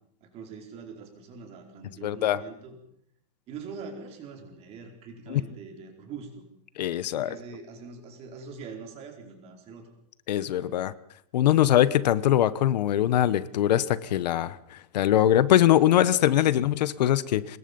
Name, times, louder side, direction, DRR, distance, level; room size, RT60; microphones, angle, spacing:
voice 1, 0.2-2.8 3.5-6.4 7.1-9.9 10.4-10.8 15.7-15.9 16.3-16.4, right 5 dB, 30° right, 3 dB, 4.8 m, -43 dB
voice 2, 2.0-2.4 5.3-5.4 6.8-7.3 10.3-10.9 11.3-17.6, left 12 dB, 90° left, 17 dB, 1.2 m, -22 dB
25.5 x 21.0 x 5.4 m, 0.70 s
supercardioid pair, 165°, 21 cm